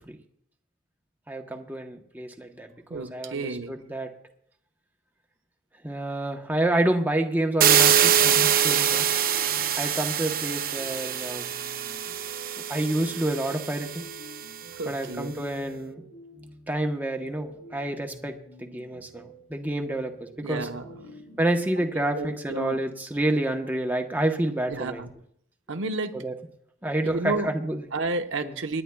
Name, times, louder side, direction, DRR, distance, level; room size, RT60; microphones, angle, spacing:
voice 1, 1.3-4.1 5.8-9.0 9.8-11.5 12.7-14.0 14.8-16.0 16.7-20.7 21.4-25.0 26.1-26.3 26.8-27.8 28.4-28.6, right 1 dB, 10° right, 3 dB, 1.0 m, -28 dB
voice 2, 2.9-3.7 14.7-15.4 20.4-21.0 21.8-22.8 24.7-25.1 25.7-26.2 27.0-27.5 27.9-28.8, right 3 dB, 85° right, 5 dB, 1.0 m, -32 dB
sound 1, 7.6-14.4, right 9 dB, 50° right, 0.7 m, -24 dB
sound 2, 8.6-22.3, equal, 75° left, 4.6 m, -49 dB
28.0 x 9.9 x 2.3 m, 0.67 s
head